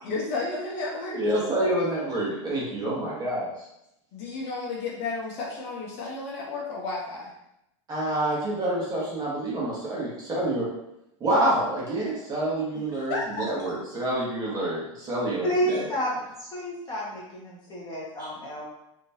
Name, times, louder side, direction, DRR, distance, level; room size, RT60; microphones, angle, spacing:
voice 1, 0.0-1.2 1.6-1.9 4.1-7.3 12.9-13.5, left 3 dB, 50° left, -4 dB, 1.1 m, -32 dB
voice 2, 1.1-3.5 7.9-10.7 11.2-15.8, right 1 dB, 20° right, -6 dB, 1.3 m, -27 dB
voice 3, 15.4-16.1 16.5-18.6, equal, 25° left, -5 dB, 1.4 m, -30 dB
3.5 x 2.9 x 2.8 m, 0.83 s
supercardioid pair, 130°, 17 cm